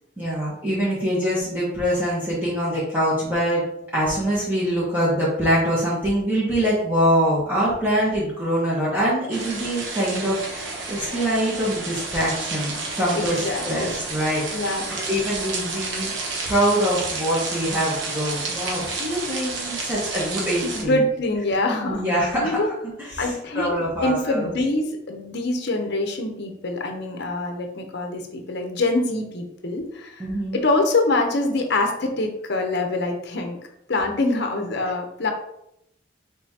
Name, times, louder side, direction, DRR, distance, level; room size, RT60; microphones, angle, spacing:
voice 1, 0.2-3.6 3.9-16.1 16.4-21.0 21.8-22.7 23.0-24.5 30.2-30.6, equal, 10° right, -8 dB, 1.1 m, -24 dB
sound 1, 9.3-20.8, right 3 dB, 65° right, 0.9 m, -31 dB
voice 2, 13.1-13.9 14.5-14.8 20.6-22.0 22.4-22.7 23.2-23.7 24.0-30.2 30.5-33.6 33.9-35.3, left 2 dB, 60° left, 3 dB, 0.7 m, -24 dB
5.4 x 3.5 x 2.8 m, 0.79 s
head